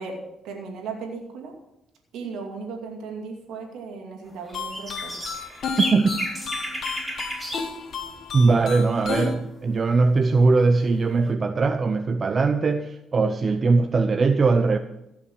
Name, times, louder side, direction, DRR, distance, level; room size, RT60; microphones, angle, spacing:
voice 1, 0.0-1.5 2.1-5.2, right 4 dB, 85° right, 2.5 m, -36 dB
sound 1, 4.4-7.7 8.0-8.2 11.1-11.3, equal, 10° right, 5.4 m, -32 dB
sound 2, 4.5-9.4, left 5 dB, 65° left, 1.8 m, -33 dB
voice 2, 5.8-6.2 8.3-14.8, right 3 dB, 40° right, 0.7 m, -20 dB
16.0 x 6.0 x 6.3 m
cardioid pair, 90°, 0 cm